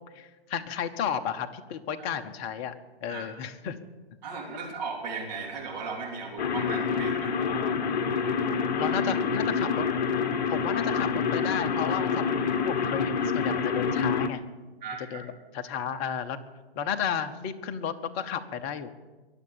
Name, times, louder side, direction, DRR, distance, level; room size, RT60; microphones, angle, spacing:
voice 1, 0.1-2.7 3.0-3.8 8.8-9.9 10.5-14.4 15.0-16.4 16.7-18.9, left 8 dB, 25° left, 8 dB, 0.9 m, -33 dB
voice 2, 3.1-3.4 4.2-7.3 14.8-15.2, right 4 dB, 40° right, -1 dB, 3.5 m, -36 dB
sound 1, 6.4-14.3, left 5 dB, 45° left, 1.2 m, -27 dB
22.5 x 7.8 x 7.2 m, 1.2 s
figure-of-eight pair, 130°, 31 cm